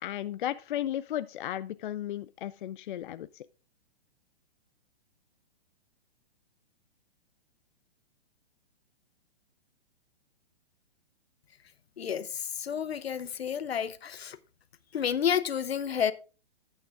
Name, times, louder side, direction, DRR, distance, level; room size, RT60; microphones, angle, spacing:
voice 1, 0.0-3.4, left 12 dB, 55° left, 0.4 m, -35 dB
voice 2, 12.0-14.4 14.9-16.1, left 8 dB, 75° left, 0.8 m, -30 dB
13.0 x 9.0 x 2.5 m
figure-of-eight pair, 120°, 31 cm